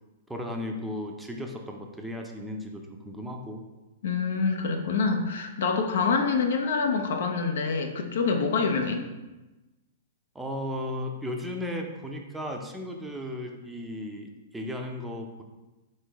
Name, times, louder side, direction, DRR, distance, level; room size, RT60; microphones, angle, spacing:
voice 1, 0.3-3.6 10.3-15.4, left 1 dB, 5° right, 2 dB, 0.5 m, -35 dB
voice 2, 4.0-9.1, left 4 dB, 70° left, 4 dB, 0.5 m, -26 dB
4.1 x 3.2 x 3.4 m, 1.1 s
hypercardioid pair, 120°, 0 cm